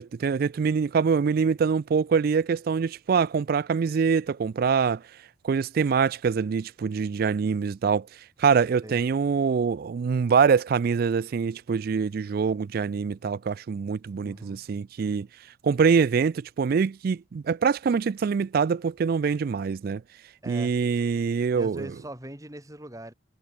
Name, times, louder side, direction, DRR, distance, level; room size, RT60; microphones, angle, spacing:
voice 1, 0.0-5.0 5.4-8.1 8.4-15.3 15.6-20.0 20.5-21.9, right 6 dB, 50° right, 0.3 m, -24 dB
voice 2, 14.2-14.7 20.4-20.8 21.5-23.1, right 1 dB, 15° right, 2.8 m, -41 dB
head